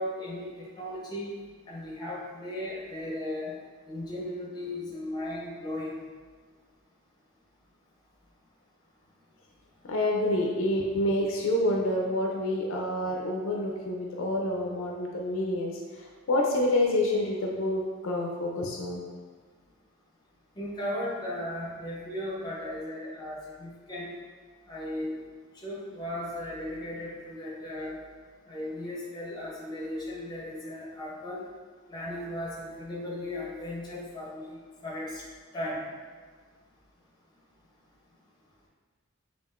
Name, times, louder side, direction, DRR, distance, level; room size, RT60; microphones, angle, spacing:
voice 1, 0.0-1.3 1.7-3.6 3.9-5.9 20.5-24.1 24.7-25.2 25.6-28.0 28.5-31.4 31.9-35.2 35.5-35.9, left 1 dB, 20° left, -5 dB, 0.7 m, -36 dB
voice 2, 9.8-19.0, left 1 dB, 65° left, -1 dB, 0.4 m, -28 dB
5.4 x 2.4 x 2.4 m, 1.5 s
head